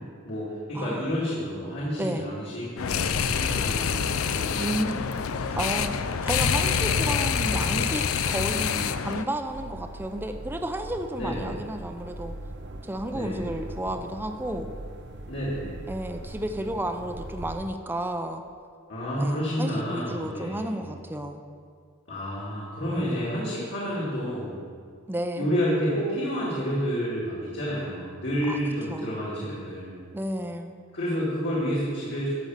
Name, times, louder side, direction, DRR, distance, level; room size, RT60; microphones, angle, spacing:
voice 1, 0.0-5.0 11.1-11.5 13.1-13.4 15.3-15.9 18.9-20.9 22.1-24.6 25.4-30.0 30.9-32.3, equal, 55° left, -7 dB, 2.4 m, -30 dB
voice 2, 0.7-1.1 2.0-2.3 4.6-5.1 5.6-5.9 6.2-12.3 12.8-14.7 15.9-18.4 19.2-21.4 22.9-23.4 25.1-25.5 28.5-28.6 28.9-29.2 30.1-30.7, right 1 dB, 10° right, 5 dB, 0.5 m, -32 dB
sound 1, 2.8-9.2, left 6 dB, 75° left, 0.5 m, -26 dB
sound 2, 9.5-17.7, right 1 dB, 55° right, 0.7 m, -40 dB
12.5 x 5.3 x 7.4 m, 2.1 s
head